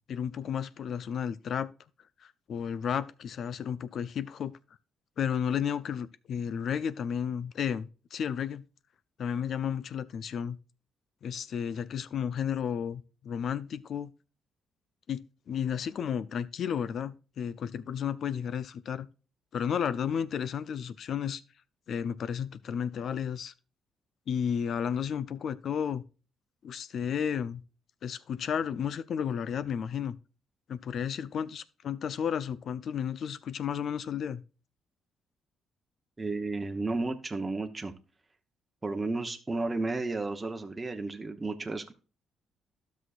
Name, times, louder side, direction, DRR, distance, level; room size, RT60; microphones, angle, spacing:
voice 1, 0.1-1.7 2.2-4.5 5.2-8.7 9.2-10.6 11.2-14.1 15.1-19.1 19.5-21.4 21.9-23.5 24.3-26.0 26.6-27.6 28.0-30.2 30.7-34.4, left 8 dB, 60° left, 0.5 m, -32 dB
voice 2, 36.2-37.9 38.8-41.9, right 3 dB, 20° right, 0.9 m, -33 dB
12.5 x 6.3 x 2.5 m
cardioid pair, 90°, 0 cm